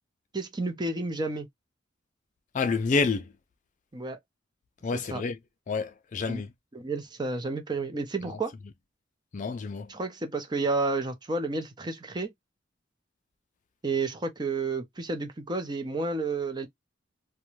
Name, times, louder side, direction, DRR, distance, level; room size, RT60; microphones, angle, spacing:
voice 1, 0.3-1.5 3.9-4.2 5.1-5.2 6.3-6.4 6.7-8.5 9.9-12.3 13.8-16.7, right 3 dB, 25° right, 0.6 m, -31 dB
voice 2, 2.5-3.3 4.8-5.4 5.7-6.5 8.2-8.4 9.3-9.9, left 4 dB, 40° left, 0.4 m, -29 dB
2.5 x 2.2 x 3.0 m
head